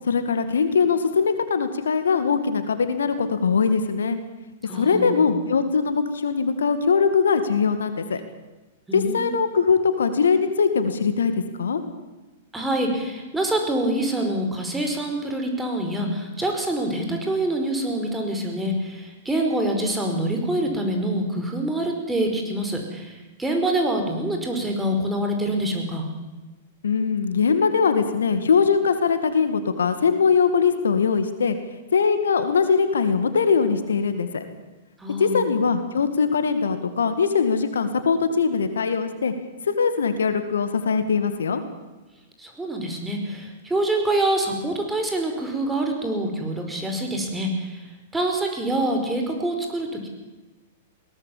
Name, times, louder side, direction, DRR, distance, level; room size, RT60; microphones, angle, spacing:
voice 1, 0.0-4.2 4.7-8.2 8.9-11.3 11.6-11.8 26.8-31.6 31.9-34.4 35.2-39.3 39.6-41.6, left 5 dB, 75° left, 9 dB, 2.1 m, -21 dB
voice 2, 4.6-5.2 8.9-9.4 12.5-26.1 35.0-35.5 42.4-50.1, right 1 dB, 10° right, 3 dB, 5.1 m, -26 dB
21.5 x 18.5 x 7.4 m, 1.1 s
figure-of-eight pair, 105°, 0 cm